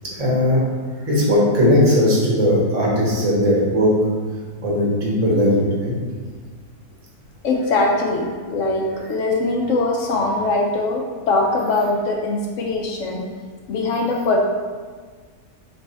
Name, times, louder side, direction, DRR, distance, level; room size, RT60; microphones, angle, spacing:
voice 1, 0.2-0.6 1.1-3.9 4.6-5.9, left 1 dB, 30° right, -5 dB, 1.0 m, -18 dB
voice 2, 7.4-13.2 13.7-14.5, left 2 dB, 70° left, 0 dB, 0.8 m, -21 dB
3.3 x 3.3 x 4.1 m, 1.5 s
omnidirectional pair, 1.7 m